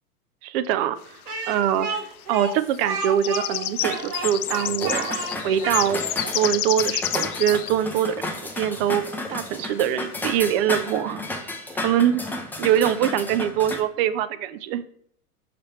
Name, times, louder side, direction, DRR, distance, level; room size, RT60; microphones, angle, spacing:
voice 1, 0.4-1.2 1.5-6.1 6.3-8.2 8.5-11.2 11.7-12.2 12.6-14.8, right 10 dB, 40° right, 13 dB, 0.5 m, -23 dB
Speech, 1.2-6.3, right 4 dB, 80° right, 1.3 m, -31 dB
sound 1, 1.3-1.4 2.2-2.4 2.7-7.7 8.0-8.1 8.5-8.6 9.4-9.5 10.0-10.1, left 13 dB, 70° left, 0.5 m, -29 dB
sound 2, 3.8-13.8, left 2 dB, 5° left, 0.5 m, -33 dB
5.8 x 3.2 x 5.6 m, 0.65 s
hypercardioid pair, 100°, 46 cm